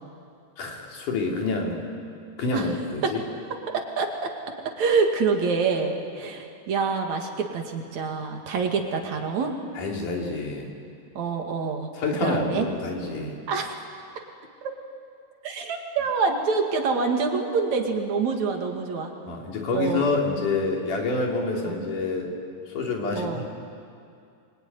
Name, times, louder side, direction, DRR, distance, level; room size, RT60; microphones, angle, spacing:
voice 1, 0.6-1.8 2.4-3.2 9.8-10.7 12.0-13.4 19.3-22.3 22.7-23.5, left 3 dB, 80° left, 0 dB, 4.7 m, -27 dB
voice 2, 3.7-4.3 4.7-9.6 11.2-11.9 12.2-12.7 13.5-13.8 14.6-14.7 15.4-19.1 19.7-20.0 21.7-21.8 23.2-23.4, right 4 dB, 65° right, 3 dB, 3.4 m, -26 dB
25.5 x 23.0 x 9.6 m, 2.4 s
omnidirectional pair, 3.6 m